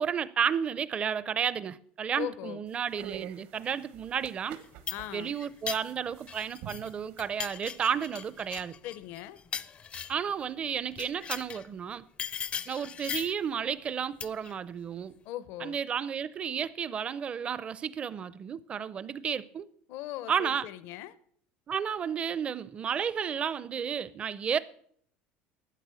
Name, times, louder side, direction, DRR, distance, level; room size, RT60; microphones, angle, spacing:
voice 1, 0.0-4.6 5.1-8.7 10.1-12.0 12.7-15.1 15.6-19.6 20.3-20.7 21.7-24.6, right 7 dB, 25° right, 0.5 m, -32 dB
voice 2, 2.1-2.6 4.9-5.3 8.8-9.4 15.2-15.8 19.9-21.2, left 13 dB, 60° left, 0.7 m, -39 dB
sound 1, 2.7-8.6, right 10 dB, 75° right, 1.5 m, -49 dB
sound 2, 4.5-6.9 7.2-10.3 10.9-11.7 12.2-13.4 14.2-14.5, left 7 dB, 25° left, 0.5 m, -39 dB
12.5 x 9.1 x 6.9 m
cardioid pair, 150°, 4 cm